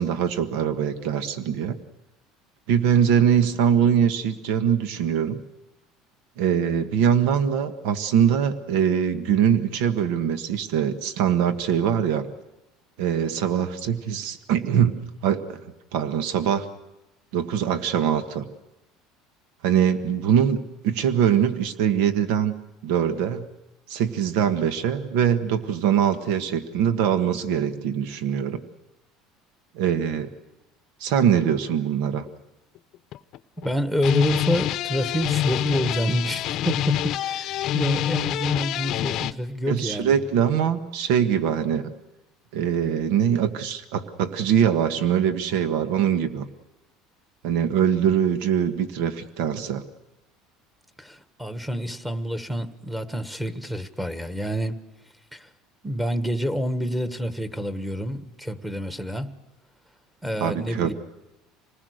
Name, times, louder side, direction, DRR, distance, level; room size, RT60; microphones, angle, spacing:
voice 1, 0.0-1.8 2.7-5.4 6.4-12.3 13.0-15.6 15.9-16.7 17.3-18.4 19.6-20.6 20.8-22.5 22.8-23.5 23.9-28.6 29.7-30.3 31.0-32.2 39.7-41.9 42.5-46.5 47.4-49.8 60.4-60.9, right 8 dB, 75° right, 1.6 m, -22 dB
sound 1, 32.3-32.4 32.9-33.7 33.9-39.3, left 12 dB, 50° left, 0.8 m, -26 dB
voice 2, 33.6-40.1 51.0-54.8 55.3-55.5 55.8-59.4 60.2-60.9, equal, 5° right, 1.5 m, -28 dB
27.0 x 20.0 x 6.6 m
cardioid pair, 135°, 0 cm